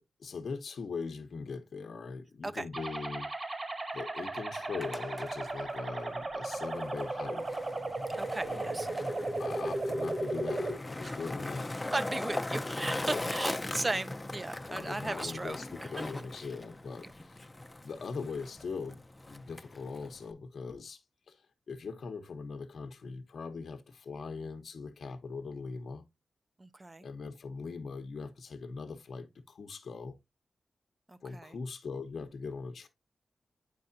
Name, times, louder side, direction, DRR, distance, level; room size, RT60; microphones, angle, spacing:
voice 1, 0.0-3.3 3.9-7.6 8.4-8.9 9.4-11.8 13.1-13.2 14.7-17.5 17.8-21.0 21.3-26.0 27.0-30.2 31.2-32.9, left 4 dB, 70° left, 1.0 m, -41 dB
sound 1, 2.7-10.7, right 2 dB, 40° right, 1.7 m, -35 dB
Skateboard, 4.6-20.3, left 2 dB, 15° left, 0.6 m, -40 dB
voice 2, 8.2-8.9 11.0-11.2 11.9-15.6 26.6-27.1 31.1-31.5, right 2 dB, 25° right, 0.6 m, -36 dB
9.2 x 4.8 x 2.7 m
wide cardioid pair, 90°, 0 cm